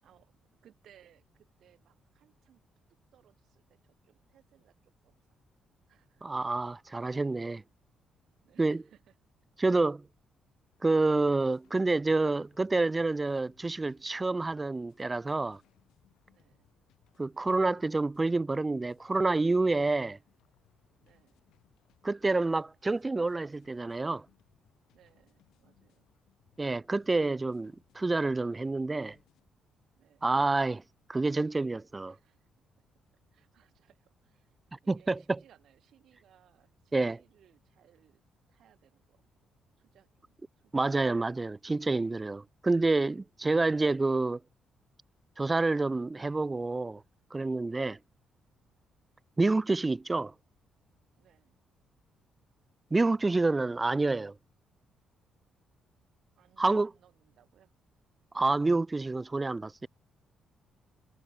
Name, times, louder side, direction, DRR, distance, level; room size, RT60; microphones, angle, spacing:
voice 1, 0.0-2.6 2.9-5.4 5.9-6.3 8.4-9.2 16.3-16.7 21.0-21.4 24.9-26.1 30.0-30.3 32.1-32.5 32.9-33.0 33.3-38.2 38.5-39.2 39.8-41.2 47.7-48.1 51.2-51.6 56.4-57.7, right 10 dB, 70° right, 6.3 m, -65 dB
voice 2, 6.2-7.6 8.6-8.8 9.6-10.0 10.8-15.6 17.2-20.2 22.0-24.2 26.6-29.2 30.2-30.8 31.1-32.2 34.9-35.2 36.9-37.2 40.7-44.4 45.4-47.0 47.3-47.9 49.4-50.3 52.9-54.3 56.6-56.9 58.3-59.9, right 3 dB, 20° right, 0.3 m, -28 dB
sound 1, 10.7-29.5, left 14 dB, 85° left, 3.6 m, -69 dB
cardioid pair, 90°, 0 cm